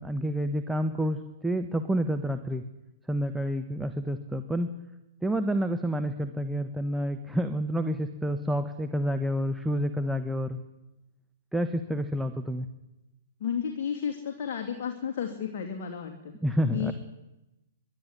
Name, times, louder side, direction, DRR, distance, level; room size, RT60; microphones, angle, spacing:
voice 1, 0.0-2.6 3.1-4.7 5.2-10.6 11.5-12.7 16.4-16.9, equal, 5° right, 6 dB, 1.2 m, -29 dB
voice 2, 13.4-16.3 16.7-16.9, left 8 dB, 50° left, 2 dB, 2.8 m, -32 dB
24.0 x 12.0 x 9.9 m, 0.98 s
hypercardioid pair, 115°, 0 cm